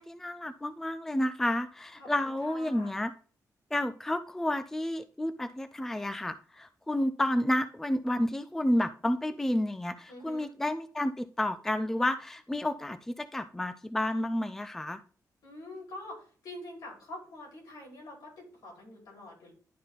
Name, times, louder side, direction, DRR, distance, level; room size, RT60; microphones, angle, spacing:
voice 1, 0.0-3.1 3.7-15.0, left 1 dB, 5° left, 11 dB, 0.3 m, -30 dB
voice 2, 2.0-2.9 10.1-10.5 15.4-19.5, left 1 dB, 75° left, -1 dB, 4.6 m, -46 dB
11.0 x 4.1 x 3.9 m, 0.41 s
wide cardioid pair, 180°, 7 cm